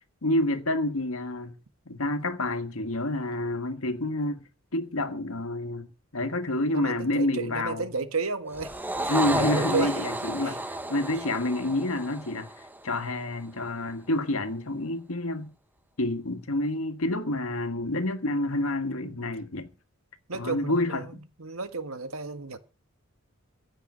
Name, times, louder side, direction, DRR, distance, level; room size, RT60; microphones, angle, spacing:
voice 1, 0.2-1.6 1.9-4.5 4.7-7.9 9.1-12.5 12.8-15.5 16.0-19.7 20.3-21.2, left 1 dB, 75° left, 1.6 m, -28 dB
voice 2, 6.7-8.8 9.0-10.0 10.4-10.5 19.0-19.3 20.3-21.1 21.4-22.6, right 4 dB, 75° right, 1.6 m, -33 dB
sound 1, 8.5-13.1, right 1 dB, 10° right, 1.0 m, -32 dB
16.0 x 5.9 x 9.7 m
head